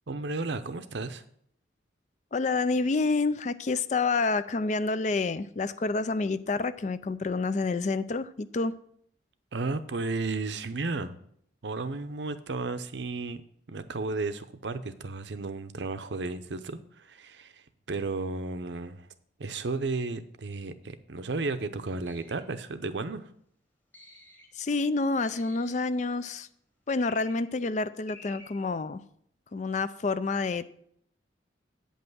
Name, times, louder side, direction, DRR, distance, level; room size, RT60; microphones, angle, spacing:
voice 1, 0.1-1.2 9.5-11.2 11.6-13.4 13.7-19.1 19.4-23.3, right 3 dB, 75° right, 11 dB, 0.7 m, -33 dB
voice 2, 2.3-8.8 24.6-26.5 26.9-29.0 29.5-30.7, left 3 dB, 40° left, 14 dB, 0.4 m, -28 dB
sound 1, 22.0-22.5 23.9-24.6 25.2-25.9 27.0-27.5 28.1-28.7, left 2 dB, 10° left, 1.3 m, -51 dB
8.7 x 5.5 x 6.1 m, 0.67 s
head